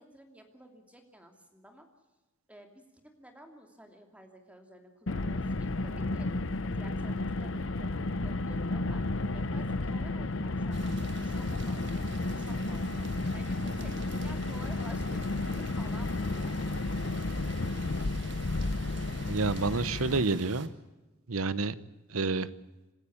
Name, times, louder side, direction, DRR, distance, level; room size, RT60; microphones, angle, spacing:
voice 1, 0.0-1.9 2.5-6.3 6.6-17.1, equal, 5° right, 4 dB, 2.7 m, -53 dB
Car, 5.1-20.2, left 2 dB, 60° left, 0.8 m, -32 dB
sound 1, 10.7-20.7, right 4 dB, 55° right, 1.7 m, -49 dB
voice 2, 19.2-20.7 21.3-21.7 22.1-22.5, right 3 dB, 80° right, 16 dB, 1.0 m, -29 dB
27.0 x 13.5 x 8.7 m, 1.1 s
head